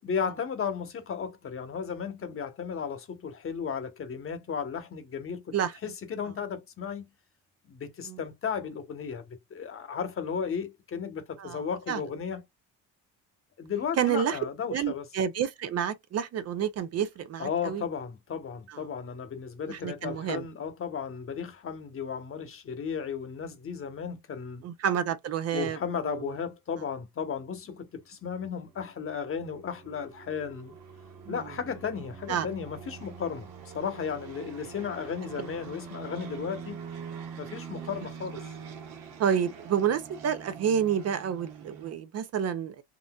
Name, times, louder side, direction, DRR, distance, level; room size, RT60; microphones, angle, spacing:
voice 1, 0.0-5.6 5.8-7.1 7.7-12.4 13.6-15.1 17.4-24.6 25.5-30.8 31.3-33.5 33.7-36.8 37.4-38.4, left 7 dB, 40° left, 1.0 m, -34 dB
voice 2, 11.4-12.0 14.0-14.4 14.7-17.8 18.7-18.8 19.6-20.4 24.6-25.8 26.1-26.3 31.3-31.4 32.3-32.5 39.2-42.8, right 8 dB, 45° right, 0.5 m, -29 dB
sound 1, 28.6-41.9, right 6 dB, 85° right, 1.3 m, -44 dB
3.9 x 2.6 x 2.2 m
cardioid pair, 95°, 35 cm